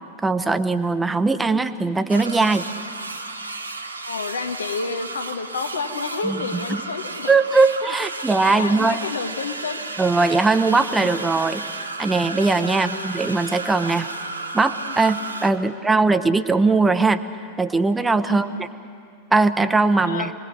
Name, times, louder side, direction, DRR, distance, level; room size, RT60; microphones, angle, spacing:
voice 1, 0.2-2.7 6.2-6.8 7.3-9.0 10.0-14.1 14.5-17.2 17.6-18.7 19.3-20.3, right 3 dB, 10° right, 10 dB, 1.1 m, -20 dB
sound 1, 2.1-15.5, right 3 dB, 80° right, 1.5 m, -33 dB
voice 2, 4.1-7.3 8.2-9.8 12.7-13.0 15.6-15.9 18.2-18.7 20.0-20.3, left 4 dB, 70° left, 6 dB, 1.7 m, -30 dB
26.5 x 21.0 x 8.4 m, 2.4 s
figure-of-eight pair, 90°, 0 cm